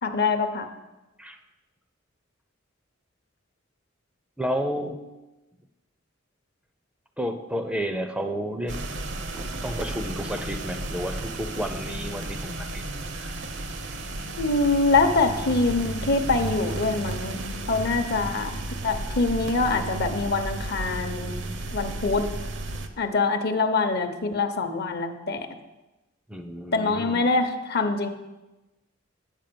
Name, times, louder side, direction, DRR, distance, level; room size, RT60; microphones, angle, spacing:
voice 1, 0.0-0.7 14.4-17.4 17.7-21.3 21.7-22.3 23.0-25.5 26.7-28.1, left 3 dB, 55° left, 8 dB, 0.8 m, -24 dB
voice 2, 4.4-5.0 7.2-8.8 9.3-12.8 13.1-13.3 26.3-27.3, equal, 5° right, 7 dB, 0.5 m, -31 dB
sound 1, 8.7-22.9, right 2 dB, 65° right, 0.7 m, -33 dB
9.0 x 5.2 x 6.8 m, 1.1 s
head